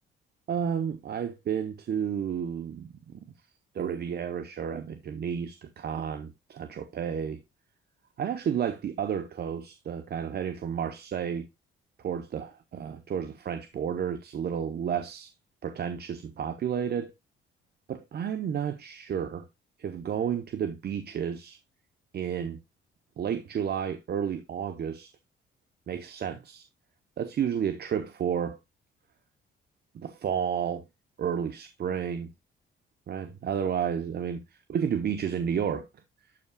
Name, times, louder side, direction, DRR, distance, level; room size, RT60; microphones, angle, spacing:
voice 1, 0.5-3.2 3.7-7.4 8.2-11.5 12.0-15.3 15.6-17.1 17.9-19.5 19.8-21.6 22.1-22.6 23.2-25.1 25.9-26.7 27.2-28.6 29.9-30.8 31.2-32.3 33.1-34.4 34.7-35.9, right 8 dB, 55° right, 0.8 m, -31 dB
12.0 x 5.6 x 2.2 m
cardioid pair, 90°, 20 cm